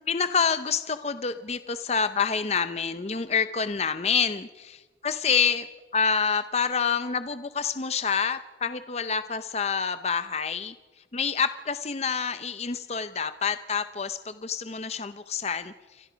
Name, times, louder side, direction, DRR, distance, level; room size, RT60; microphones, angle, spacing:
voice 1, 0.1-5.7 5.9-10.7 11.1-15.7, left 6 dB, 35° left, 11 dB, 0.6 m, -27 dB
28.5 x 25.0 x 5.1 m, 1.3 s
head